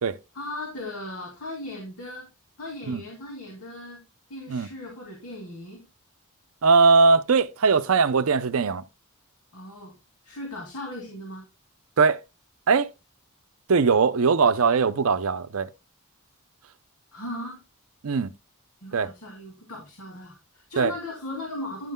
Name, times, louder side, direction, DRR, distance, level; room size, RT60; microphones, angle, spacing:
voice 1, 0.3-2.3 2.6-4.0 4.3-5.8 9.5-9.9 10.2-11.4 17.1-17.6 18.8-21.9, left 1 dB, 80° left, 2.4 m, -37 dB
voice 2, 6.6-8.8 12.0-12.2 12.7-12.9 13.7-15.7 18.0-18.3 18.9-19.1 20.8-20.9, right 4 dB, 65° right, 0.6 m, -20 dB
10.5 x 9.2 x 2.2 m
head